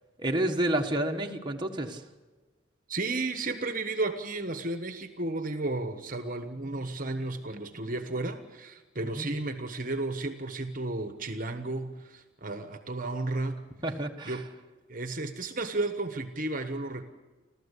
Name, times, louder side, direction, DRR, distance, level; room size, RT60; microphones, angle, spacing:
voice 1, 0.2-2.0 9.2-9.3 13.8-14.4, right 1 dB, 25° right, 1 dB, 1.5 m, -29 dB
voice 2, 2.9-13.7 14.2-14.5 14.9-17.0, right 2 dB, 45° right, 8 dB, 1.3 m, -33 dB
29.5 x 13.5 x 8.4 m, 1.3 s
head